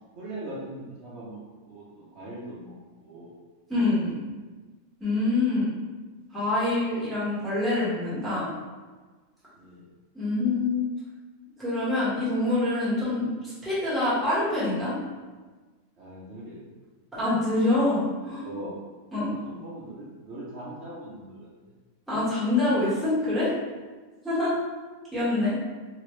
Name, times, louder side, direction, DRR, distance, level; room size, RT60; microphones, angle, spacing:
voice 1, 0.1-1.4 1.7-2.7 3.0-3.3 9.5-9.8 16.0-16.6 18.2-18.7 19.4-21.7, right 1 dB, 60° right, -7 dB, 1.0 m, -41 dB
voice 2, 3.7-4.2 5.0-5.7 6.3-8.5 10.1-10.9 11.6-14.9 17.2-18.4 19.1-19.3 22.1-23.5 24.2-24.6 25.1-25.6, left 2 dB, ahead, -10 dB, 1.1 m, -25 dB
3.1 x 2.9 x 3.1 m, 1.3 s
omnidirectional pair, 1.4 m